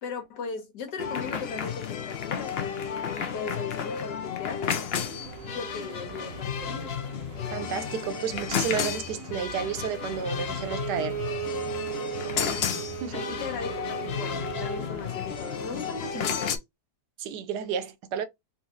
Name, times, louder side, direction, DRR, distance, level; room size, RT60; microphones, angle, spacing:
voice 1, 0.0-2.6 3.0-4.6 4.9-7.0 12.3-12.7 13.1-13.8 14.0-16.6, left 5 dB, 90° left, 1.7 m, -38 dB
sound 1, 1.0-16.6, left 7 dB, 70° left, 0.6 m, -32 dB
sound 2, 5.2-16.0, right 6 dB, 60° right, 1.0 m, -44 dB
voice 2, 7.5-11.2 13.0-13.4 17.2-18.2, right 7 dB, 80° right, 1.2 m, -32 dB
Bowed string instrument, 10.6-14.9, right 9 dB, 35° left, 1.6 m, -36 dB
4.0 x 2.7 x 2.6 m
omnidirectional pair, 1.8 m